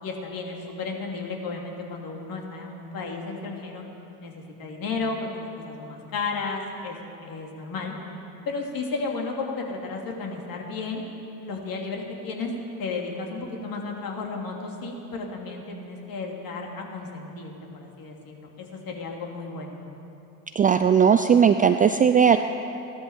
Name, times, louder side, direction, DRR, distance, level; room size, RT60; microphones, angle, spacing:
voice 1, 0.0-3.8 4.2-7.9 8.4-11.0 11.4-12.5 12.8-19.8, left 4 dB, 45° left, 1 dB, 3.1 m, -33 dB
voice 2, 20.6-22.4, right 7 dB, 20° right, 8 dB, 0.4 m, -18 dB
16.0 x 12.0 x 7.4 m, 2.9 s
hypercardioid pair, 80°, 47 cm